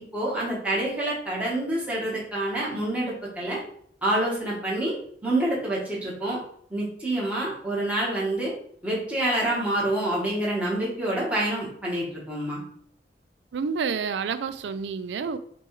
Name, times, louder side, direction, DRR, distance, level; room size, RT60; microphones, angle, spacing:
voice 1, 0.0-3.6 4.0-5.0 5.2-6.4 6.7-8.5 8.8-12.6, right 1 dB, 10° right, -6 dB, 1.0 m, -27 dB
voice 2, 13.5-15.4, right 5 dB, 90° right, 13 dB, 0.4 m, -29 dB
6.0 x 2.3 x 3.0 m, 0.62 s
head